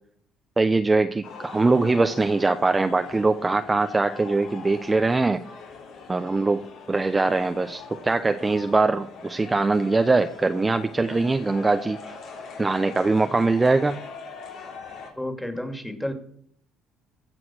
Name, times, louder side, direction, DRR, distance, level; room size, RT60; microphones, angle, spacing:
voice 1, 0.6-5.4 6.1-12.0 12.6-14.0, right 3 dB, 20° right, 9 dB, 0.6 m, -22 dB
sound 1, 1.2-15.1, left 5 dB, 70° left, 4.0 m, -42 dB
voice 2, 15.2-16.1, left 1 dB, 5° left, 6 dB, 2.4 m, -31 dB
15.5 x 6.1 x 6.2 m, 0.65 s
supercardioid pair, 85°, 0 cm